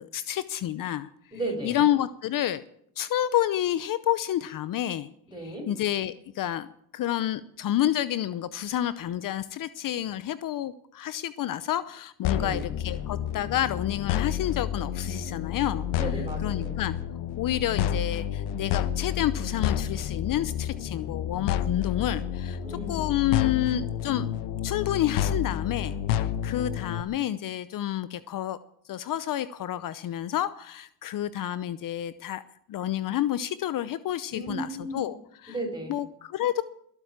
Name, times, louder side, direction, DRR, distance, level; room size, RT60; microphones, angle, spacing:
voice 1, 0.0-1.1 1.6-2.6 3.0-5.1 5.4-6.7 6.9-15.9 16.4-17.0 17.4-24.3 24.6-25.9 26.2-28.6 28.9-32.4 32.7-35.2 35.4-35.5 35.9-36.6, left 12 dB, 55° left, 14 dB, 0.8 m, -29 dB
voice 2, 1.3-1.8 5.3-5.7 12.3-12.6 15.9-16.8 22.6-23.1 34.3-35.1 35.5-35.9, right 2 dB, 10° right, 4 dB, 6.6 m, -35 dB
sound 1, 12.2-27.0, left 9 dB, 90° left, 1.1 m, -30 dB
21.5 x 8.3 x 7.4 m, 0.70 s
cardioid pair, 110°, 39 cm